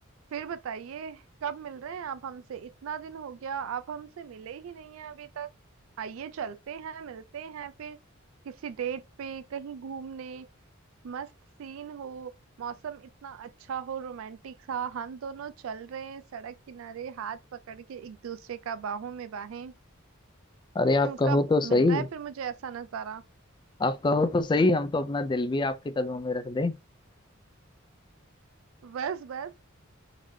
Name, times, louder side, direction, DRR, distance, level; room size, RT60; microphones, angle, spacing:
voice 1, 0.3-5.5 6.0-8.0 8.4-10.5 11.0-11.3 11.6-12.3 12.6-19.7 21.0-23.2 28.8-29.6, right 7 dB, 70° right, 0.4 m, -37 dB
voice 2, 20.8-22.1 23.8-26.7, left 2 dB, 20° left, 0.3 m, -25 dB
3.9 x 3.1 x 2.7 m
head